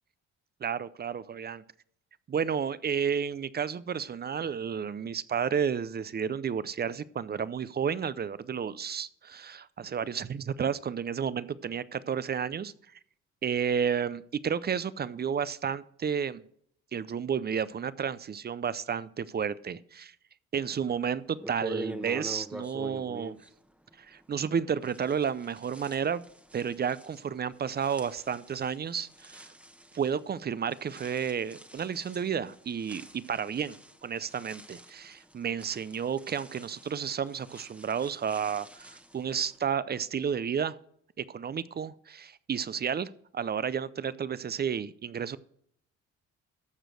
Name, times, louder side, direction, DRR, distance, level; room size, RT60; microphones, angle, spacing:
voice 1, 0.6-1.6 2.3-12.7 13.4-16.4 16.9-20.1 20.5-23.4 24.0-26.2 26.5-29.5 29.9-33.8 34.0-40.7 41.2-45.4, right 7 dB, 35° right, 0.5 m, -31 dB
sound 1, 20.9-21.0 21.4-24.5 24.8-39.6, right 1 dB, 5° right, 1.0 m, -46 dB
14.0 x 5.1 x 6.3 m
cardioid pair, 90°, 30 cm